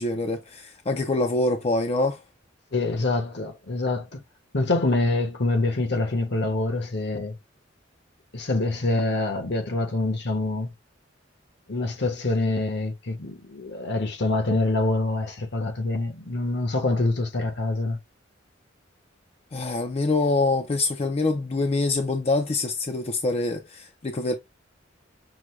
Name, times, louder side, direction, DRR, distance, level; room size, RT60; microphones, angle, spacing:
voice 1, 0.0-2.2 19.5-24.3, left 2 dB, 30° left, 0.5 m, -25 dB
voice 2, 2.7-4.2 4.5-7.4 8.3-10.7 11.7-18.0, left 2 dB, 60° left, 1.0 m, -25 dB
6.2 x 2.2 x 3.2 m
head